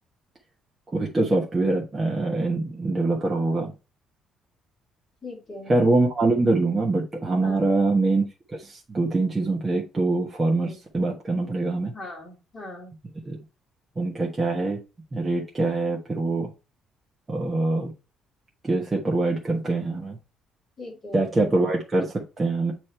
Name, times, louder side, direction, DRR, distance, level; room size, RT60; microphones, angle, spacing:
voice 1, 0.9-3.7 5.7-8.2 8.6-11.9 13.3-13.4 14.0-14.8 15.1-16.5 17.3-17.9 18.6-20.2 21.1-22.7, right 2 dB, 15° right, -2 dB, 1.2 m, -24 dB
voice 2, 5.2-5.7 7.4-7.7 10.6-10.7 11.9-12.9 20.8-21.3, left 2 dB, 20° left, -2 dB, 2.8 m, -40 dB
8.6 x 3.1 x 4.3 m, 0.30 s
cardioid pair, 175°, 0 cm